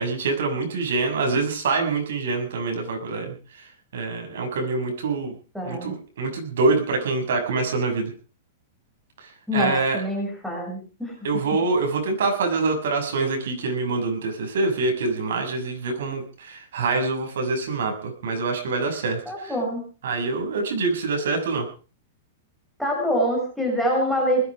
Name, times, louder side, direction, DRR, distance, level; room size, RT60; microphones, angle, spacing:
voice 1, 0.0-3.3 3.9-5.3 5.6-8.1 9.5-10.0 11.2-19.5 20.0-21.7, right 3 dB, 80° right, 4 dB, 6.8 m, -25 dB
voice 2, 5.5-5.9 9.5-11.2 19.3-19.9 22.8-24.5, equal, ahead, -1 dB, 6.4 m, -25 dB
20.0 x 13.5 x 5.0 m, 0.38 s
supercardioid pair, 165°, 0 cm